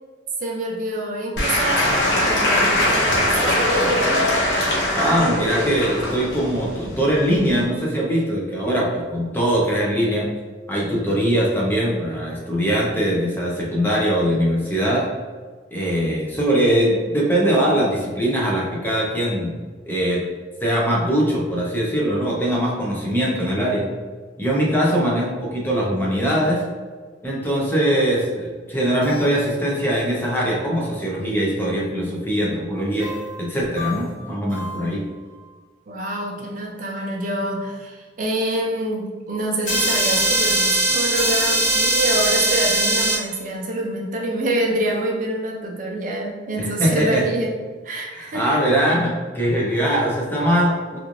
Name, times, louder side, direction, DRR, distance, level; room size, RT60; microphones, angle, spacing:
voice 1, 0.4-4.1 35.9-47.5 47.8-48.6, right 1 dB, 45° right, 0 dB, 0.4 m, -26 dB
Applause / Crowd, 1.4-7.7, left 1 dB, 80° left, 0.8 m, -21 dB
voice 2, 4.9-10.3 10.7-15.0 15.7-19.5 19.9-20.2 20.6-23.8 24.4-26.6 27.2-33.1 33.4-35.0 46.6-47.2 48.1-51.0, equal, 10° left, -4 dB, 0.6 m, -21 dB
sound 1, 28.9-29.4 33.0-33.4 33.8-34.0 34.5-34.8 39.6-43.2, right 1 dB, 45° left, 1.0 m, -21 dB
3.0 x 2.5 x 2.5 m, 1.4 s
head